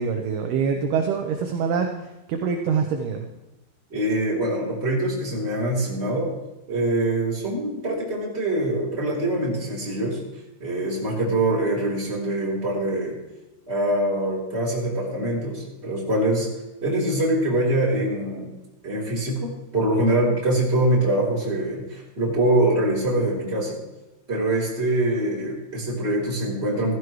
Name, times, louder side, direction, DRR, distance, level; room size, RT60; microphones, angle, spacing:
voice 1, 0.0-3.3, right 6 dB, 75° right, 4 dB, 2.5 m, -25 dB
voice 2, 3.9-6.3 6.7-10.2 10.6-13.2 13.7-16.5 16.8-18.5 18.8-23.8 24.3-26.9, right 1 dB, 15° right, -4 dB, 3.6 m, -24 dB
15.5 x 15.0 x 3.2 m, 1.0 s
omnidirectional pair, 5.4 m